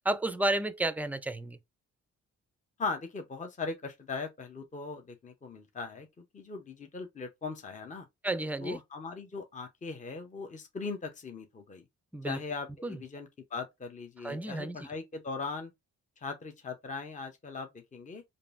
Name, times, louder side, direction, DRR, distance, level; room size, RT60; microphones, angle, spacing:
voice 1, 0.0-1.6 8.2-8.8 12.1-12.4 12.8-13.0 14.2-14.9, right 1 dB, 5° right, 0.4 m, -32 dB
voice 2, 2.8-8.1 8.6-11.8 12.2-15.7 16.2-18.2, left 4 dB, 25° left, 0.8 m, -39 dB
5.1 x 2.6 x 2.5 m
cardioid pair, 90°, 30 cm